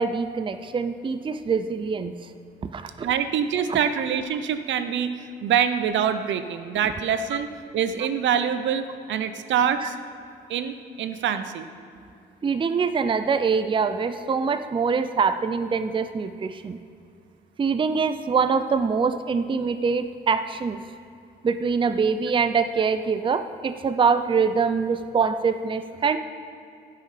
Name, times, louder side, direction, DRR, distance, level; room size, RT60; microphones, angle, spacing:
voice 1, 0.0-2.1 2.6-3.1 3.7-3.8 12.4-16.8 17.6-20.8 21.4-26.2, right 5 dB, 25° right, 10 dB, 0.5 m, -24 dB
voice 2, 3.0-5.1 5.4-7.5 7.7-10.0 10.5-11.7, right 8 dB, 70° right, 10 dB, 0.7 m, -25 dB
16.0 x 5.8 x 5.0 m, 2.6 s
cardioid pair, 90°, 20 cm